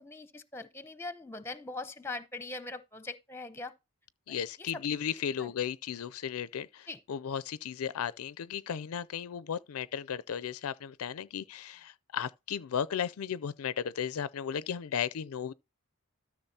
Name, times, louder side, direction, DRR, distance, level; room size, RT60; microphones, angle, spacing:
voice 1, 0.0-3.7 4.3-4.8 5.4-5.5 6.9-7.0, left 3 dB, 10° left, 0.7 m, -41 dB
voice 2, 4.3-15.5, left 8 dB, 70° left, 0.4 m, -35 dB
13.0 x 6.2 x 2.8 m
head